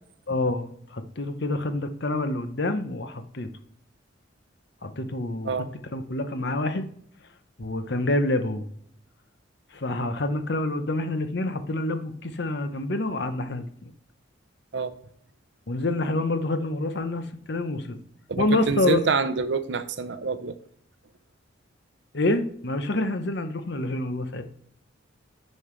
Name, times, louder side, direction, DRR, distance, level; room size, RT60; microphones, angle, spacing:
voice 1, 0.3-3.5 4.8-5.7 5.9-6.9 7.6-8.6 9.7-13.9 15.7-18.0 18.4-19.0 22.1-24.4, left 2 dB, 55° left, 9 dB, 0.8 m, -27 dB
voice 2, 18.3-20.5, right 4 dB, 60° right, 11 dB, 0.6 m, -26 dB
9.7 x 5.3 x 3.2 m, 0.65 s
head